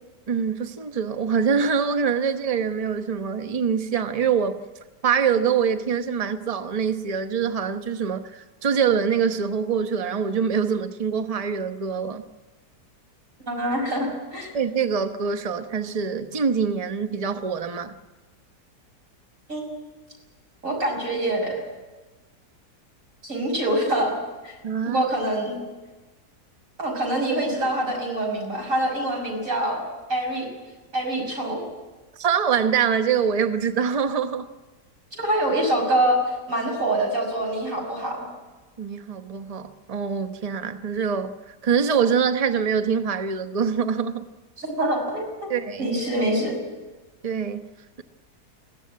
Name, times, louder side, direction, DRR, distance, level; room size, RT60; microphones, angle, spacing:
voice 1, 0.3-4.6 5.0-12.2 14.5-17.9 24.6-25.0 32.2-34.5 38.8-44.3 45.5-45.9 47.2-47.7, right 6 dB, 25° right, 1.0 m, -24 dB
voice 2, 13.5-14.5 19.5-19.6 20.6-21.6 23.2-24.2 24.4-24.6 24.9-25.6 26.8-29.8 30.1-30.5 30.9-31.6 35.1-36.2 36.5-38.3 44.6-46.5, right 1 dB, 50° right, 6.6 m, -25 dB
22.0 x 16.0 x 9.5 m
omnidirectional pair, 1.7 m